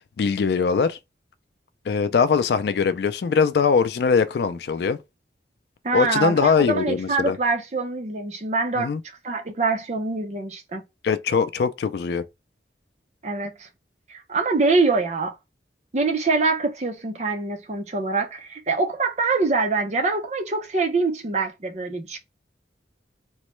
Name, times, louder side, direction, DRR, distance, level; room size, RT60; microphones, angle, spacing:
voice 1, 0.2-1.0 1.9-5.0 5.9-7.4 8.8-9.0 11.0-12.2, left 5 dB, 65° left, 0.3 m, -21 dB
voice 2, 5.8-8.9 9.2-10.8 13.2-13.7 14.1-15.3 15.9-22.2, right 3 dB, 40° right, 0.5 m, -24 dB
3.0 x 2.1 x 3.0 m
head